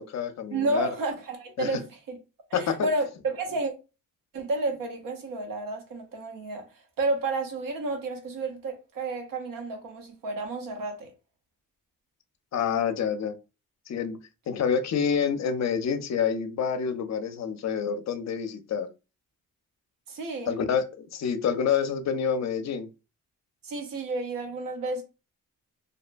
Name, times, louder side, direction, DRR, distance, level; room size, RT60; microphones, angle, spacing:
voice 1, 0.0-0.9 1.6-1.7 2.5-2.9 12.5-13.4 13.9-14.2 14.5-18.9 20.5-22.9, left 7 dB, 55° left, 0.5 m, -27 dB
voice 2, 0.5-2.2 2.5-3.7 4.3-11.1 20.1-20.5 23.6-25.0, right 2 dB, 75° right, 0.9 m, -31 dB
2.7 x 2.1 x 2.5 m
cardioid pair, 70°, 34 cm